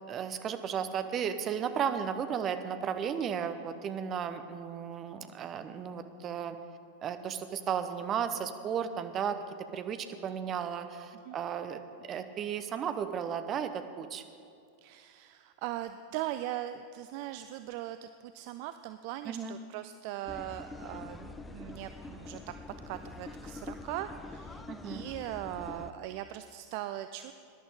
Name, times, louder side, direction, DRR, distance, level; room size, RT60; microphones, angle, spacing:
voice 1, 0.1-6.6 7.0-9.4 9.7-14.2 19.2-19.6 24.7-25.0, right 8 dB, 30° right, 9 dB, 0.8 m, -34 dB
voice 2, 14.8-22.6 22.9-27.3, right 13 dB, 45° right, 10 dB, 0.4 m, -40 dB
sound 1, 20.3-25.9, left 3 dB, 10° left, 0.7 m, -45 dB
20.5 x 11.0 x 3.7 m, 2.5 s
figure-of-eight pair, 90°, 0 cm